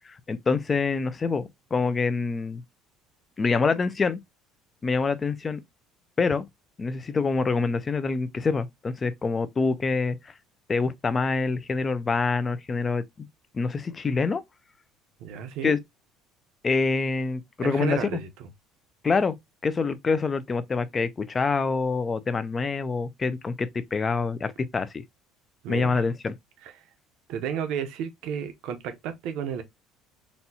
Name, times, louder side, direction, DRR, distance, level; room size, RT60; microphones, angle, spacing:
voice 1, 0.1-2.6 3.4-4.2 4.8-5.6 6.2-6.5 6.8-10.3 10.7-13.3 13.5-14.4 15.6-15.8 16.6-18.2 19.0-19.3 19.6-25.0 25.7-26.3, left 4 dB, 20° left, 0.4 m, -26 dB
voice 2, 15.2-15.8 17.6-18.5 25.6-26.0 26.6-26.7 27.3-29.6, right 8 dB, 70° right, 0.7 m, -32 dB
4.0 x 2.3 x 2.7 m
cardioid pair, 135°, 0 cm